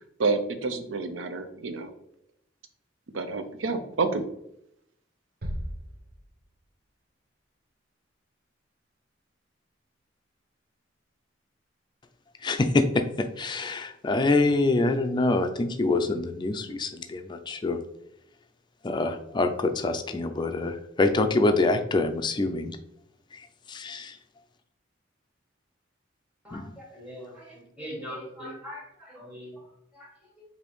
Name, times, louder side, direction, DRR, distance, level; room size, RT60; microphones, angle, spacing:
voice 1, 0.2-1.9 3.1-4.2, right 3 dB, 85° right, 8 dB, 0.6 m, -28 dB
sound 1, 5.4-6.8, equal, 50° right, 0.8 m, -37 dB
voice 2, 12.4-17.8 18.8-22.7 23.7-24.1 26.5-26.6, left 2 dB, 25° left, 7 dB, 0.4 m, -25 dB
voice 3, 26.4-30.4, equal, 5° right, -3 dB, 1.4 m, -42 dB
5.0 x 2.7 x 3.0 m, 0.77 s
head